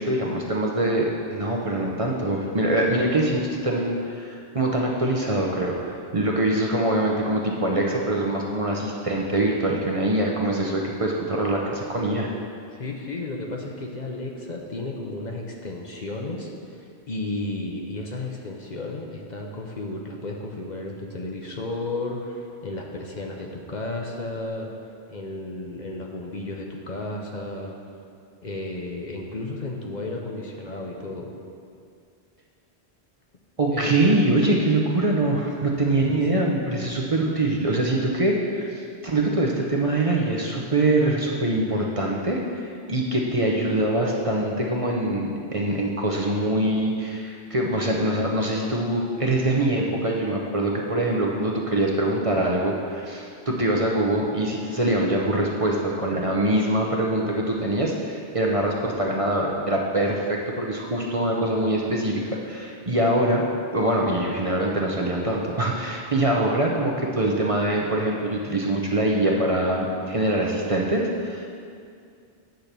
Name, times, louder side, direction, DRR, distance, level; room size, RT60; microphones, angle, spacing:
voice 1, 0.0-12.3 33.6-63.4 63.7-71.5, right 1 dB, 35° right, -1 dB, 0.8 m, -24 dB
voice 2, 12.8-24.7 25.1-27.8 28.4-31.3 33.7-33.9 36.0-36.5, left 2 dB, 45° left, 0 dB, 0.9 m, -33 dB
9.1 x 4.4 x 6.7 m, 2.3 s
omnidirectional pair, 1.1 m